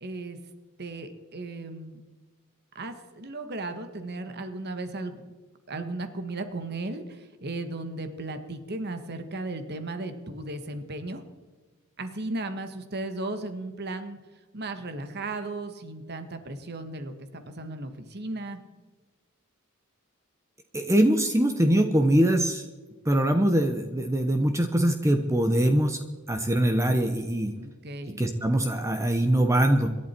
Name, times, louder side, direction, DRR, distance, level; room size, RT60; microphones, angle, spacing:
voice 1, 0.0-0.4 0.8-2.0 2.7-5.2 5.7-11.2 12.0-14.2 14.5-18.6 27.6-28.2, right 2 dB, 50° right, 8 dB, 1.6 m, -35 dB
voice 2, 20.7-22.6 23.0-26.0 26.3-27.5 28.2-29.9, right 1 dB, 15° right, 6 dB, 0.9 m, -23 dB
26.0 x 11.5 x 4.5 m, 1.3 s
head